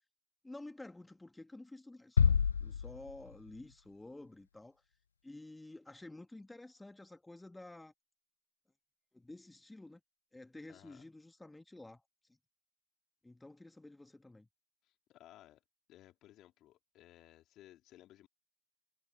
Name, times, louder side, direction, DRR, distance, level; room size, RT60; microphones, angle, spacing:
voice 1, 0.4-4.8 5.2-7.9 9.1-10.0 10.3-12.0 12.3-12.4 13.2-14.5, left 2 dB, 5° left, 2.1 m, -51 dB
sound 1, 2.2-3.7, left 6 dB, 70° left, 0.5 m, -30 dB
voice 2, 10.7-11.1 14.8-15.6 15.9-18.3, left 14 dB, 35° left, 4.2 m, -59 dB
figure-of-eight pair, 95°, 0 cm